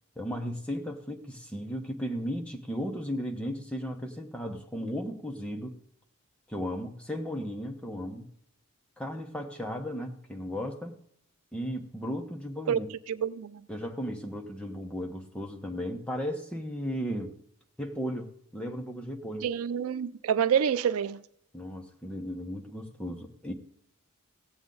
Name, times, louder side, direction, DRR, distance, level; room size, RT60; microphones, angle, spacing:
voice 1, 0.2-5.8 6.5-8.3 9.0-11.0 11.5-12.9 13.7-17.3 17.8-19.5 21.5-23.5, equal, 5° left, 1.0 m, -35 dB
voice 2, 13.1-13.6 19.4-21.2, right 8 dB, 75° right, 0.4 m, -27 dB
16.0 x 7.9 x 3.9 m
head